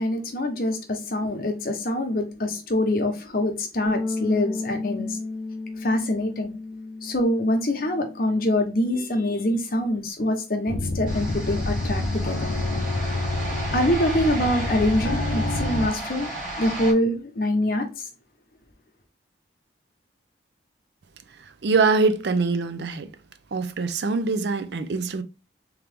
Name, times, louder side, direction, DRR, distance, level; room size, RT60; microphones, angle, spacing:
voice 1, 0.0-5.2 5.8-6.5 7.0-12.5 13.7-16.3 16.6-18.1, left 1 dB, 50° left, 0.9 m, -25 dB
Bass guitar, 3.9-10.1, left 2 dB, 20° left, 0.8 m, -34 dB
sound 1, 10.7-15.9, left 2 dB, 85° left, 0.5 m, -28 dB
sound 2, 11.1-16.9, right 1 dB, 45° right, 2.0 m, -33 dB
voice 2, 21.4-23.1 23.5-25.2, right 4 dB, 65° right, 0.5 m, -23 dB
3.7 x 3.0 x 3.4 m
head